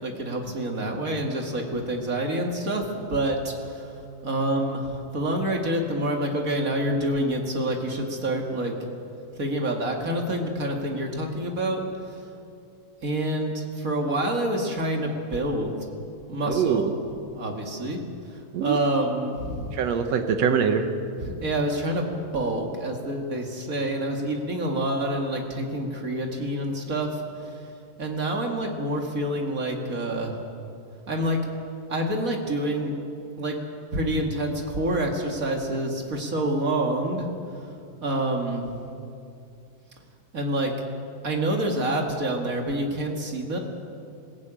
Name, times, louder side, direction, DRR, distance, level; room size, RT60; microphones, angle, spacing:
voice 1, 0.0-4.0 4.2-8.7 9.3-12.2 13.0-15.9 16.3-16.9 17.3-18.0 18.3-19.8 21.2-27.6 28.0-30.4 31.1-31.4 31.9-32.9 33.4-33.6 33.9-37.3 37.6-37.7 38.0-38.7 40.3-40.8 41.2-43.6, right 1 dB, 35° right, 2 dB, 1.5 m, -27 dB
voice 2, 16.5-16.9 18.5-18.8 19.7-20.9, right 7 dB, 70° right, 7 dB, 1.6 m, -23 dB
20.5 x 16.0 x 8.9 m, 2.5 s
omnidirectional pair, 4.3 m